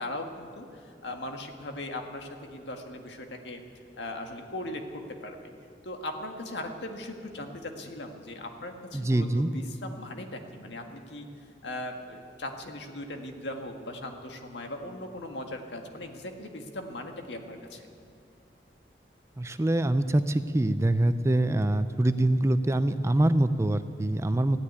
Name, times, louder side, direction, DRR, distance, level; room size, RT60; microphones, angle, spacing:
voice 1, 0.0-3.6 4.0-5.5 5.8-11.3 11.6-17.9, left 1 dB, 85° left, 4 dB, 1.7 m, -39 dB
voice 2, 8.9-9.5 19.4-24.6, right 1 dB, 15° right, 11 dB, 0.4 m, -24 dB
15.0 x 10.0 x 9.5 m, 2.3 s
head